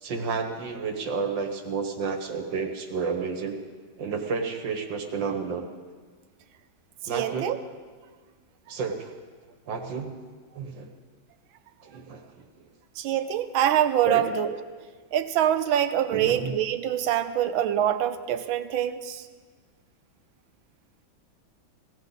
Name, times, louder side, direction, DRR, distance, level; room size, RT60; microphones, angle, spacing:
voice 1, 0.0-3.6 4.0-5.6 7.1-7.5 8.7-9.1 9.7-10.1 10.5-10.9 11.8-12.4 14.0-14.2 16.1-16.5, right 5 dB, 70° right, 5 dB, 2.0 m, -31 dB
voice 2, 7.0-7.6 13.0-14.5 15.1-19.2, right 10 dB, 85° right, 11 dB, 1.6 m, -25 dB
17.5 x 17.0 x 4.1 m, 1.5 s
omnidirectional pair, 2.1 m